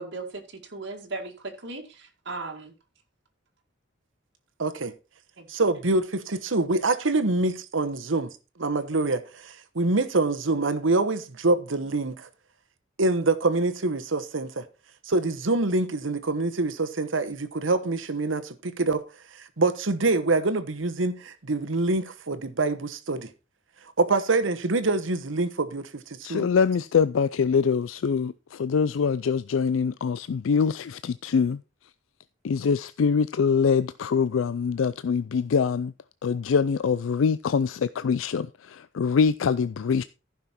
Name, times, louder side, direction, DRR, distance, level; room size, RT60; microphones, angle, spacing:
voice 1, 0.0-2.7 5.4-5.5, right 3 dB, 60° right, 2.1 m, -37 dB
voice 2, 4.6-4.9 5.5-8.3 8.6-12.3 13.0-14.6 15.1-19.0 19.3-23.3 24.0-26.5, right 3 dB, 80° right, 1.1 m, -25 dB
voice 3, 26.2-31.6 32.4-35.9 36.2-40.0, left 6 dB, 85° left, 0.4 m, -24 dB
14.5 x 6.0 x 4.3 m
head